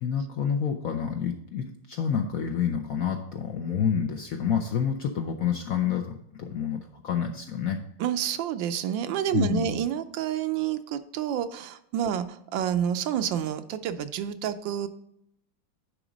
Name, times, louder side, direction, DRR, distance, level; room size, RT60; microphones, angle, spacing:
voice 1, 0.0-7.8 9.3-9.8, left 7 dB, 65° left, 3 dB, 0.8 m, -28 dB
voice 2, 8.0-14.9, right 9 dB, 80° right, 11 dB, 1.3 m, -29 dB
9.9 x 3.7 x 5.1 m, 0.75 s
omnidirectional pair, 2.1 m